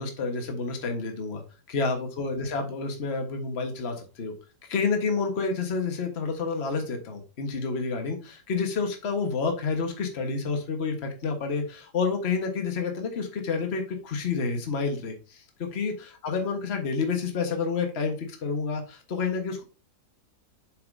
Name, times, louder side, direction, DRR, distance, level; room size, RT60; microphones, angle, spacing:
voice 1, 0.0-1.4 1.7-4.3 4.6-19.6, left 4 dB, 40° left, 4 dB, 1.4 m, -29 dB
7.0 x 6.1 x 2.6 m, 0.33 s
omnidirectional pair, 1.7 m